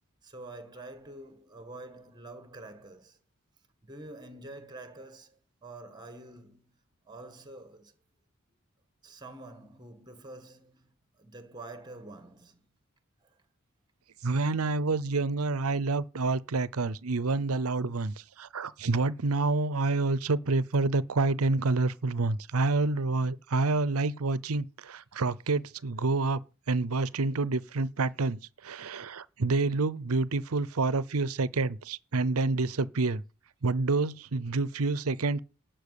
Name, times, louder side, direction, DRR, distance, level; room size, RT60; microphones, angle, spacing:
voice 1, 0.2-3.2 3.8-6.8 7.1-7.9 9.0-10.9 11.2-12.6 13.2-13.4, right 2 dB, 20° right, 1.8 m, -47 dB
voice 2, 14.2-26.4 26.7-33.2 33.6-35.4, right 3 dB, 85° right, 0.7 m, -28 dB
12.0 x 6.0 x 8.4 m
head